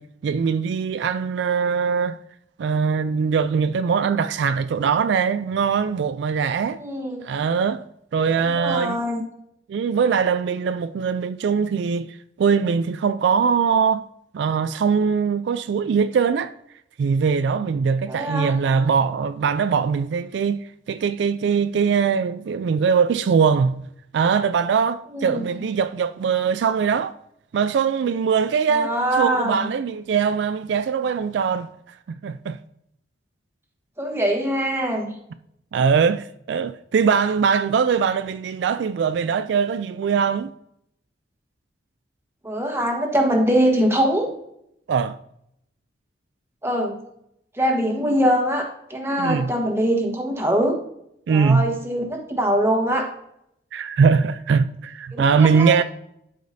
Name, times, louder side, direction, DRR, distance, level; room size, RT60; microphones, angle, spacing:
voice 1, 0.0-2.2 2.6-6.8 7.2-7.8 8.1-9.0 9.7-14.0 14.3-16.5 17.0-23.8 24.1-27.2 27.5-31.7 32.2-32.6 35.7-40.5 44.9-45.2 49.2-49.5 51.3-51.6 53.7-55.8, right 6 dB, 70° right, 0.3 m, -21 dB
voice 2, 6.8-7.2 8.5-9.2 18.1-18.6 25.1-25.6 28.7-29.6 34.0-35.1 42.4-44.3 46.6-47.0 47.5-50.8 51.3-53.1 55.1-55.8, equal, 15° right, 1.3 m, -23 dB
12.0 x 5.0 x 2.7 m
head